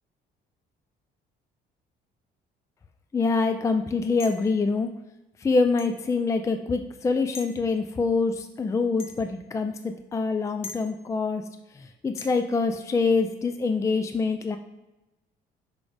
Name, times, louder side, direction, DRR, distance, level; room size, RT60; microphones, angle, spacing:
voice 1, 3.1-4.9 5.4-11.4 11.7-14.6, left 4 dB, 20° left, 7 dB, 0.4 m, -25 dB
sound 1, 4.2-4.5 5.8-6.0 7.3-7.6 9.0-9.3 10.6-10.8 12.2-12.4, left 4 dB, 35° left, 0.8 m, -40 dB
6.2 x 4.8 x 3.3 m, 0.99 s
cardioid pair, 110°, 17 cm